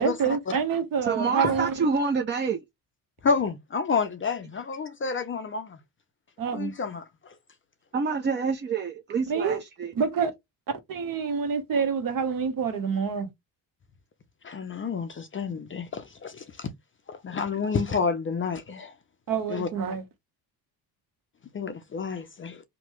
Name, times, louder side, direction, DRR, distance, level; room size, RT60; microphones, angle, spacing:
voice 1, 0.0-1.9 6.4-6.7 9.3-9.6 9.9-10.3 10.7-13.3 19.3-20.0, right 6 dB, 50° right, 0.9 m, -27 dB
voice 2, 1.1-2.6 7.9-9.9, right 5 dB, 25° right, 0.5 m, -27 dB
voice 3, 3.2-5.8 6.5-7.3 14.4-16.7 17.1-18.9 19.5-19.7 21.5-22.6, left 5 dB, 30° left, 0.5 m, -29 dB
3.0 x 2.2 x 2.9 m
supercardioid pair, 75°, 44 cm